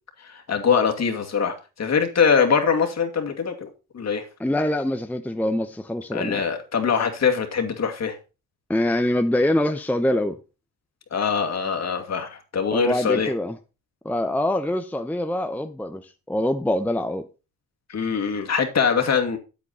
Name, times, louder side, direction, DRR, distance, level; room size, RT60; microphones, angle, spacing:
voice 1, 0.2-3.7 3.9-4.3 6.1-8.2 11.1-13.3 17.9-19.4, left 6 dB, 50° left, 2.4 m, -23 dB
voice 2, 4.4-6.4 8.7-10.4 12.7-13.5 14.0-17.3, left 1 dB, 5° left, 0.7 m, -24 dB
8.4 x 8.4 x 4.2 m
cardioid pair, 75°, 35 cm